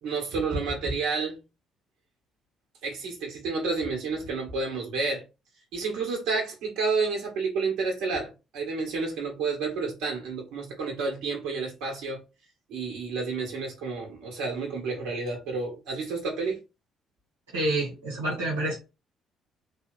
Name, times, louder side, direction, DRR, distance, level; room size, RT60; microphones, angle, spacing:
voice 1, 0.0-1.4 2.8-5.2 5.7-12.2 12.7-16.6, right 4 dB, 65° right, 1.8 m, -30 dB
voice 2, 17.5-18.8, right 1 dB, 85° right, 1.5 m, -28 dB
4.1 x 2.8 x 4.1 m
figure-of-eight pair, 45°, 0 cm